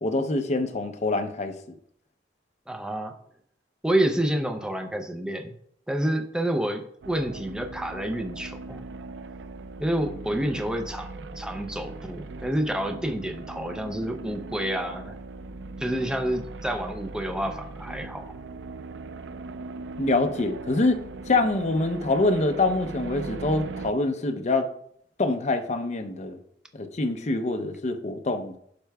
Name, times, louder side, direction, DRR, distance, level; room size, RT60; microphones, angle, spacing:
voice 1, 0.0-1.5 20.0-21.0 21.3-24.7 25.2-26.4 26.7-28.6, left 2 dB, 40° left, 6 dB, 0.6 m, -25 dB
voice 2, 2.7-3.1 3.8-5.6 5.9-8.8 9.8-15.2 15.8-18.3, right 1 dB, 5° right, 4 dB, 0.5 m, -28 dB
sound 1, 7.0-23.9, right 3 dB, 85° right, 0.4 m, -39 dB
11.5 x 4.4 x 2.3 m, 0.67 s
head